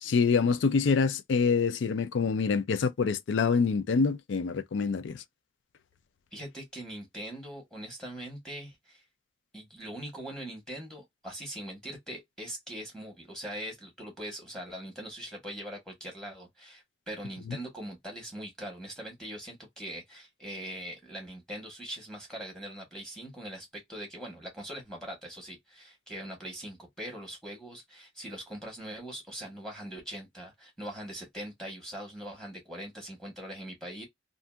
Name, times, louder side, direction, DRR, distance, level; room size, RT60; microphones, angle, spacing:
voice 1, 0.0-5.2, left 5 dB, 85° left, 0.4 m, -26 dB
voice 2, 6.3-9.0 9.5-34.0, right 1 dB, 5° left, 1.1 m, -42 dB
2.7 x 2.6 x 2.2 m
head